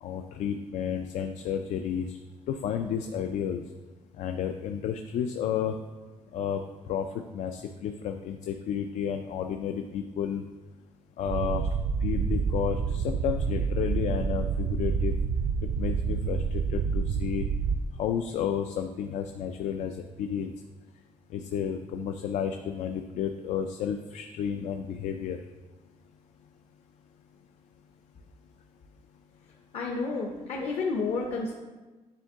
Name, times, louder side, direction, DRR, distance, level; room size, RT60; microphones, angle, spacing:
voice 1, 0.0-2.2 2.5-3.6 4.2-5.8 6.3-6.6 6.9-7.1 7.3-10.4 11.2-11.7 12.0-15.1 15.8-17.5 18.0-20.5 21.3-25.4, left 8 dB, 80° left, 6 dB, 0.4 m, -31 dB
sound 1, 11.3-17.8, right 5 dB, 75° right, 0.4 m, -28 dB
voice 2, 29.7-31.5, left 4 dB, 55° left, 0 dB, 0.7 m, -30 dB
9.3 x 3.6 x 3.6 m, 1.2 s
cardioid pair, 160°, 12 cm